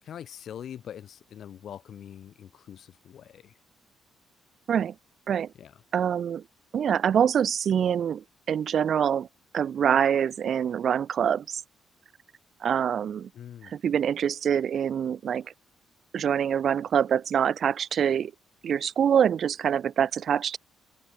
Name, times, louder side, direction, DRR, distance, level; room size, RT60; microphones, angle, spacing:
voice 1, 0.0-3.6 5.5-5.8 13.3-13.7, left 9 dB, 65° left, 2.4 m, -43 dB
voice 2, 5.9-6.4 6.7-9.3 9.5-11.6 12.6-13.3 13.6-15.5 16.1-18.3 18.6-20.6, right 8 dB, 60° right, 0.6 m, -25 dB
cardioid pair, 90°, 0 cm